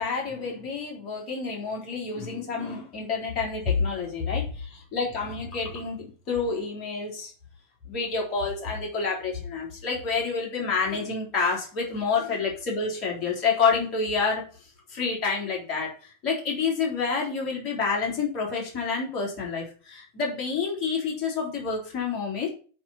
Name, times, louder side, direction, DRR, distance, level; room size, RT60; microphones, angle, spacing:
voice 1, 0.0-7.3 7.9-14.4 14.9-22.5, left 5 dB, 35° left, -1 dB, 3.6 m, -28 dB
8.8 x 4.3 x 5.7 m, 0.39 s
figure-of-eight pair, 90°, 0 cm